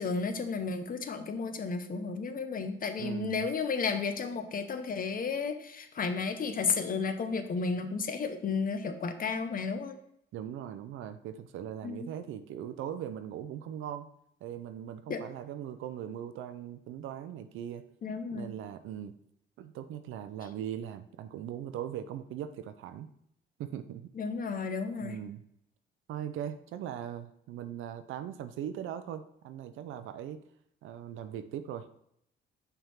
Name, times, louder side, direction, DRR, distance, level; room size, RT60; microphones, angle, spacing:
voice 1, 0.0-10.0 11.8-12.1 15.1-15.2 18.0-18.5 24.1-25.2, left 5 dB, 45° left, 9 dB, 0.8 m, -33 dB
voice 2, 3.0-3.5 10.3-14.1 14.4-17.8 18.3-19.2 19.6-23.1 23.6-24.1 25.0-25.4 26.1-30.4 30.8-31.9, right 10 dB, 85° right, 11 dB, 0.6 m, -40 dB
5.7 x 3.6 x 5.6 m, 0.73 s
cardioid pair, 90°, 20 cm